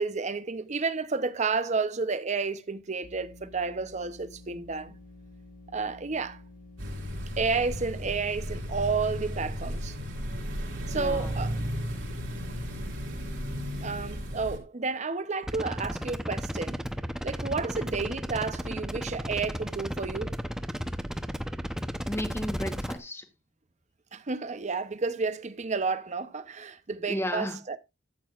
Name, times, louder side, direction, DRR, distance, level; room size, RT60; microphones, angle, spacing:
voice 1, 0.0-5.0 5.7-6.4 7.4-10.0 10.9-11.6 13.8-16.9 17.2-20.3 24.1-27.8, right 4 dB, 35° right, 0.7 m, -31 dB
sound 1, 3.0-9.5, left 2 dB, 45° left, 2.2 m, -51 dB
sound 2, 6.8-14.6, equal, 70° right, 3.5 m, -34 dB
voice 2, 10.8-11.3 22.1-23.2 27.1-27.6, left 1 dB, 15° left, 1.2 m, -33 dB
sound 3, 15.4-23.0, equal, 5° right, 0.7 m, -34 dB
13.5 x 8.4 x 2.4 m
head